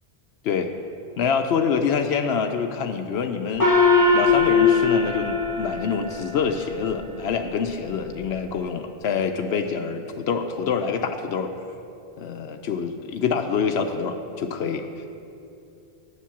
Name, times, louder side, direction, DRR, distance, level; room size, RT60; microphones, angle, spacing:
voice 1, 1.2-3.7 4.1-11.5 12.2-15.1, left 6 dB, 75° left, 6 dB, 0.8 m, -26 dB
Gong, 3.6-6.5, left 4 dB, 20° left, 0.9 m, -20 dB
8.5 x 7.4 x 7.1 m, 2.7 s
omnidirectional pair, 1.1 m